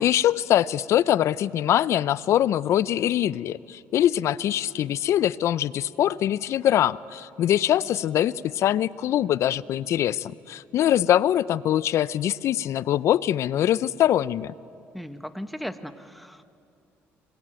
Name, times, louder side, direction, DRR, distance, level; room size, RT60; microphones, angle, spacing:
voice 1, 0.0-14.5, left 11 dB, 65° left, 19 dB, 0.5 m, -23 dB
voice 2, 14.9-16.4, equal, ahead, 10 dB, 1.2 m, -37 dB
26.0 x 21.0 x 9.0 m, 2.6 s
cardioid pair, 90°, 5 cm